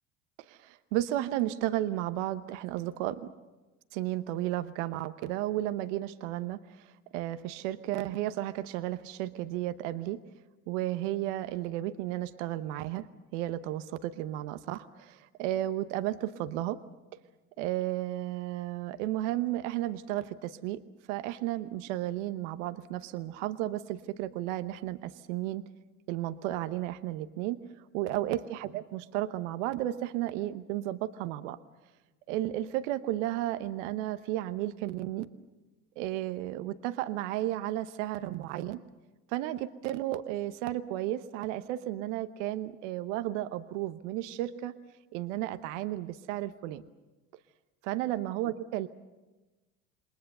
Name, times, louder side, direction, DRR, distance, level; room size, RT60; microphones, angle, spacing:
voice 1, 0.5-3.3 3.9-10.2 10.7-16.8 17.6-20.8 21.1-25.7 26.1-27.6 27.9-31.6 32.3-35.3 36.0-38.8 39.3-44.7 45.1-46.8 47.8-48.9, right 14 dB, 75° right, 11 dB, 1.0 m, -33 dB
28.0 x 21.0 x 6.7 m, 1.2 s
hypercardioid pair, 75°, 37 cm